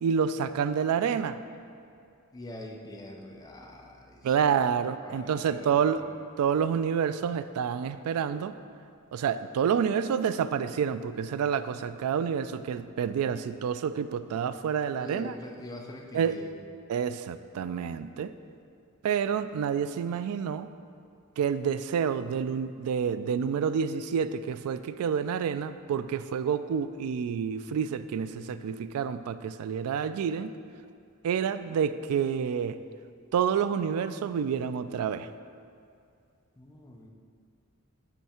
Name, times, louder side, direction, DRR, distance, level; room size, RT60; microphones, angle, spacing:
voice 1, 0.0-1.4 4.2-6.0 6.4-8.5 9.1-15.3 16.1-16.3 16.9-18.3 19.0-20.7 21.4-30.5 31.2-32.8 33.3-35.3, right 7 dB, 80° right, 13 dB, 0.3 m, -28 dB
voice 2, 2.3-4.3 5.0-6.1 15.0-16.5 36.6-37.1, left 1 dB, 15° left, 1 dB, 0.6 m, -44 dB
10.0 x 3.4 x 4.3 m, 2.4 s
head